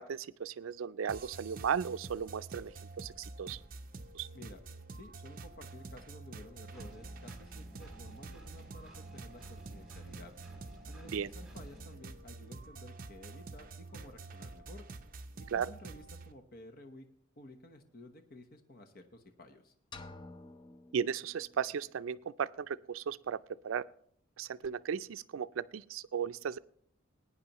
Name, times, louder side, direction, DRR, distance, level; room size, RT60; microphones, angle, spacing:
voice 1, 0.0-3.6 4.1-4.3 11.0-11.3 15.5-15.7 20.9-23.8 24.4-26.6, right 7 dB, 85° right, 16 dB, 0.4 m, -36 dB
sound 1, 1.1-16.3, right 3 dB, 45° right, 0.7 m, -48 dB
voice 2, 4.9-10.3 10.9-14.8 15.4-17.0 17.4-19.7, left 1 dB, 50° left, 6 dB, 1.0 m, -53 dB
Engine, 6.7-11.9, right 1 dB, 5° right, 1.9 m, -54 dB
sound 2, 19.9-21.9, left 2 dB, 25° left, 0.6 m, -51 dB
20.0 x 9.7 x 3.0 m, 0.62 s
head